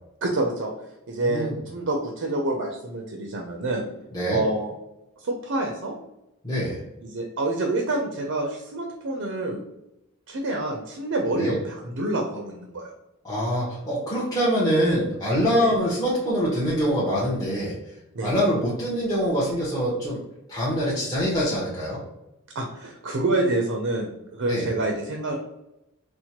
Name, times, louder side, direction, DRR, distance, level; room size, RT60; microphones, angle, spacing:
voice 1, 0.2-0.7 1.1-3.8 4.3-4.7 5.2-5.9 7.0-9.6 10.3-12.9 15.6-15.8 18.1-18.3 22.5-25.4, right 2 dB, 55° right, 2 dB, 0.5 m, -27 dB
voice 2, 1.2-1.6 4.1-4.4 6.4-6.8 11.3-11.6 13.2-17.8 18.2-20.2 20.5-22.0 24.5-24.7, equal, 15° left, -8 dB, 0.7 m, -24 dB
4.3 x 2.1 x 2.8 m, 0.89 s
head